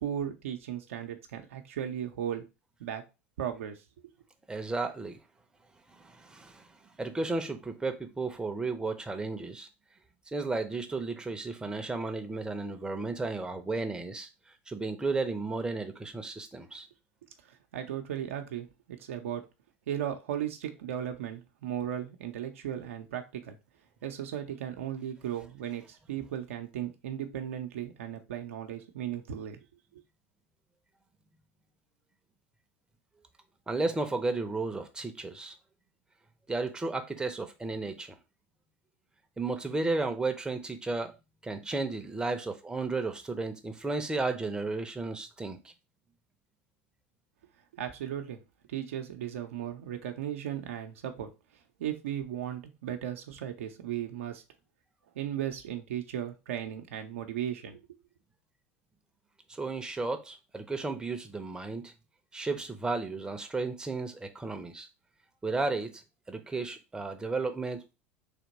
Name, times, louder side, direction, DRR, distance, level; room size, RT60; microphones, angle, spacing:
voice 1, 0.0-2.4 2.8-3.0 3.4-3.8 17.7-19.4 19.9-23.6 24.0-29.6 29.9-30.0 47.8-48.4 48.7-51.3 51.8-54.4 55.2-57.8, right 10 dB, 70° right, 0.6 m, -36 dB
voice 2, 4.5-5.2 6.0-6.6 7.0-9.7 10.3-14.3 14.7-16.9 33.7-35.6 36.5-38.2 39.4-41.1 41.4-45.7 59.5-61.9 62.3-64.9 65.4-66.0 66.3-67.9, right 3 dB, 10° right, 0.7 m, -33 dB
3.5 x 2.9 x 4.0 m
figure-of-eight pair, 75°, 7 cm